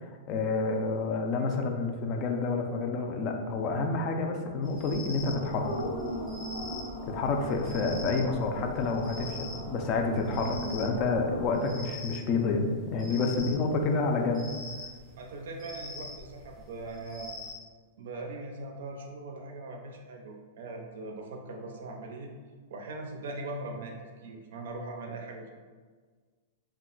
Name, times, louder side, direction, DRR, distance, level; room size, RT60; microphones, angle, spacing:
voice 1, 0.0-5.7 7.1-14.5, left 3 dB, 35° left, 3 dB, 0.4 m, -29 dB
sound 1, 4.6-17.5, left 2 dB, ahead, 0.6 m, -44 dB
sound 2, 5.3-11.7, equal, 70° left, 0.9 m, -38 dB
voice 2, 15.2-17.3 18.0-22.3 22.7-25.5, right 2 dB, 75° right, 2 dB, 0.4 m, -40 dB
2.2 x 2.1 x 3.7 m, 1.5 s
hypercardioid pair, 145°, 0 cm